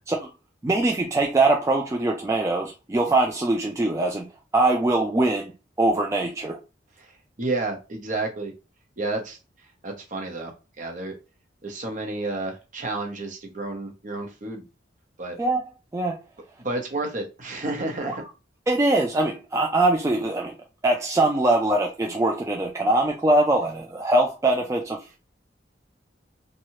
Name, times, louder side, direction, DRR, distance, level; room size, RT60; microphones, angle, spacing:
voice 1, 0.6-5.5 5.8-6.6 15.4-15.6 15.9-16.2 18.7-20.5 20.8-25.2, right 2 dB, 15° right, 0.3 m, -22 dB
voice 2, 7.4-8.5 9.0-9.4 9.8-11.1 11.6-14.6 15.2-15.4 16.6-18.2, right 2 dB, 45° right, 0.8 m, -31 dB
3.0 x 2.3 x 2.7 m
head